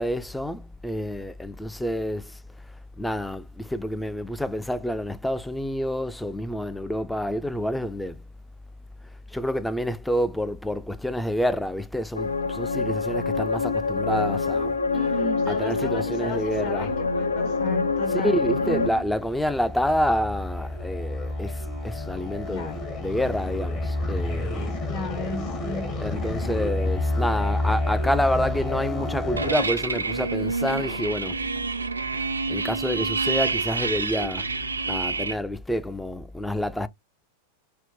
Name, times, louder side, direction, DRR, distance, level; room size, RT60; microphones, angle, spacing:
voice 1, 0.0-2.4 3.0-8.2 9.3-14.7 15.5-16.9 18.1-24.9 26.0-31.6 32.1-34.5 34.9-36.9, equal, 5° left, 0.3 m, -28 dB
sound 1, 12.1-18.9, left 4 dB, 75° left, 0.4 m, -26 dB
voice 2, 14.9-19.0 22.5-22.8 24.5-26.0, left 1 dB, 55° left, 1.7 m, -35 dB
sound 2, 18.2-29.6, left 2 dB, 40° left, 1.3 m, -30 dB
sound 3, 29.4-35.4, right 4 dB, 85° right, 0.4 m, -28 dB
4.2 x 2.0 x 3.7 m
figure-of-eight pair, 90°, 0 cm